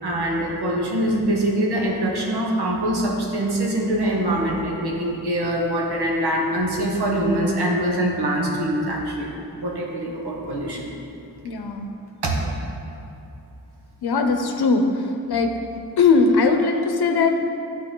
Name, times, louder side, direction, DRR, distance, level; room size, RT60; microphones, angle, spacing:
voice 1, 0.0-9.3 9.6-10.9 12.2-12.3, right 1 dB, 80° right, -2 dB, 1.4 m, -23 dB
voice 2, 11.4-11.9 14.0-14.8 15.3-15.5 16.0-17.4, left 4 dB, 75° left, 5 dB, 0.8 m, -19 dB
11.5 x 4.5 x 3.8 m, 2.7 s
wide cardioid pair, 90°, 39 cm